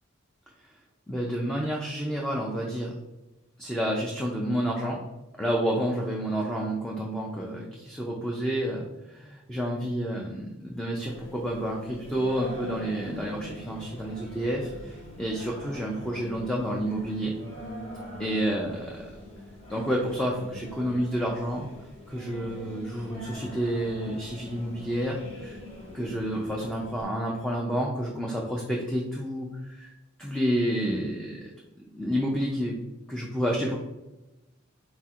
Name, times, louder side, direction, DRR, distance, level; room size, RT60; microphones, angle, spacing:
voice 1, 1.1-2.9 3.6-5.0 5.4-17.3 18.2-18.8 19.7-21.7 22.1-25.6 25.9-29.9 30.2-31.5 31.9-32.7 33.1-33.8, equal, 5° left, -2 dB, 0.4 m, -29 dB
Singing, 11.0-27.0, equal, 30° left, 0.9 m, -43 dB
4.3 x 4.1 x 2.4 m, 1.0 s
head